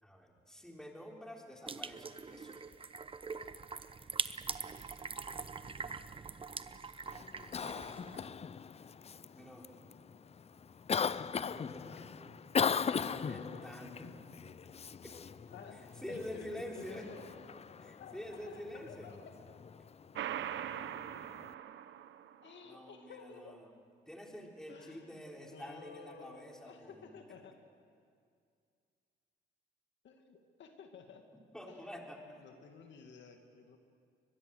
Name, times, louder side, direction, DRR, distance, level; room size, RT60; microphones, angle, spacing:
voice 1, 0.0-2.6 9.3-9.7 11.5-12.4 12.9-14.1 16.0-17.1 17.8-19.1 22.6-23.7 24.1-27.1 31.5-32.4, equal, 5° left, 0 dB, 4.0 m, -47 dB
sound 1, 1.7-8.3, right 4 dB, 25° right, 0.9 m, -43 dB
Cough, 7.1-21.5, left 6 dB, 30° left, 0.5 m, -40 dB
voice 2, 7.7-8.4 12.7-13.6 14.0-14.2 15.5-17.3 18.0-19.4 22.4-23.6 24.7-27.6 30.0-31.3 31.7-31.9 32.4-33.8, left 5 dB, 65° left, 5 dB, 2.0 m, -52 dB
sound 2, 20.2-22.6, right 10 dB, 70° right, 0.9 m, -41 dB
23.0 x 21.0 x 7.8 m, 2.3 s
cardioid pair, 90°, 20 cm